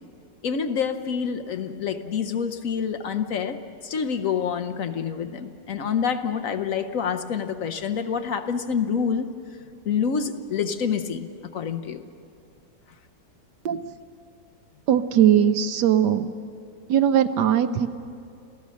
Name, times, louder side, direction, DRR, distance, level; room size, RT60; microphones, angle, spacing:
voice 1, 0.4-9.3 9.8-12.1, left 6 dB, 60° left, 8 dB, 1.1 m, -27 dB
voice 2, 14.9-16.3 16.9-17.9, right 9 dB, 75° right, 11 dB, 1.3 m, -20 dB
28.0 x 15.5 x 6.3 m, 2.4 s
omnidirectional pair, 1.9 m